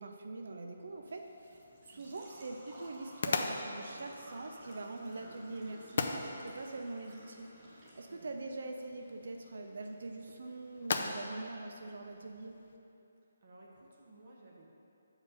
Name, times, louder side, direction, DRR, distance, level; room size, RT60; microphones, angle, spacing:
voice 1, 0.0-7.5 8.0-12.6, right 2 dB, 65° right, 4 dB, 0.5 m, -43 dB
Engine / Trickle dribble / Fill (with liquid), 0.8-12.7, right 1 dB, 20° right, 1.3 m, -57 dB
sound 1, 1.1-12.8, left 4 dB, 45° left, 0.4 m, -42 dB
voice 2, 1.9-2.3 8.1-8.4 13.4-14.7, right 2 dB, 40° right, -2 dB, 0.8 m, -57 dB
6.7 x 4.9 x 4.9 m, 2.8 s
hypercardioid pair, 170°, 0 cm